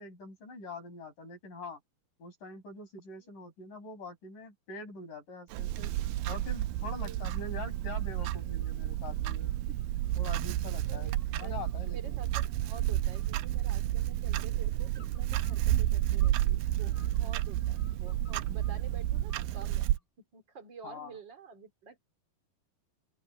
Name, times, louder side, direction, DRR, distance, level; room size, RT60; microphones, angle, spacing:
voice 1, 0.0-1.8 2.2-5.9 6.3-9.8 10.2-12.1 20.8-21.1, left 3 dB, 50° left, 7.9 m, -44 dB
Clock, 5.5-20.0, right 14 dB, 80° right, 2.4 m, -31 dB
sound 1, 5.8-6.2 6.6-7.5 7.8-8.7 9.2-11.9 12.3-12.8 13.1-14.1 14.9-16.4 16.8-18.8 19.3-20.0, left 3 dB, 10° right, 4.9 m, -62 dB
voice 2, 6.8-7.2 10.9-22.0, right 5 dB, 30° right, 3.8 m, -50 dB
open air
omnidirectional pair, 4.7 m